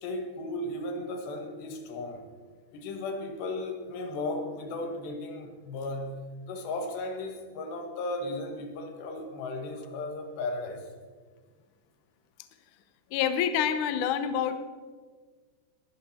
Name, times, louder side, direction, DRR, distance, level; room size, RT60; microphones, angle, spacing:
voice 1, 0.0-2.3 2.7-6.2 6.5-10.9, left 2 dB, 90° left, 5 dB, 3.8 m, -35 dB
voice 2, 13.1-14.6, left 8 dB, 70° left, 9 dB, 1.9 m, -27 dB
21.0 x 13.0 x 4.3 m, 1.5 s
omnidirectional pair, 4.7 m